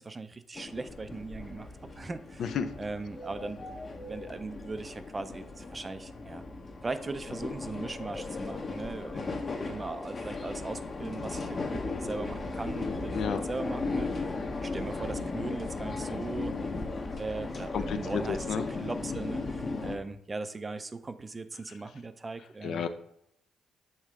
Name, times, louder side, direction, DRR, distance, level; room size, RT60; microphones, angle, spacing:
voice 1, 0.0-1.7 1.9-6.4 6.8-14.3 14.6-16.6 17.2-22.9, right 3 dB, 25° right, 11 dB, 0.4 m, -39 dB
sound 1, 0.5-20.0, left 3 dB, 40° left, 0.8 m, -36 dB
voice 2, 17.7-18.6 22.6-22.9, left 7 dB, 70° left, 9 dB, 0.5 m, -31 dB
6.5 x 3.1 x 4.8 m, 0.76 s
cardioid pair, 90°, 0 cm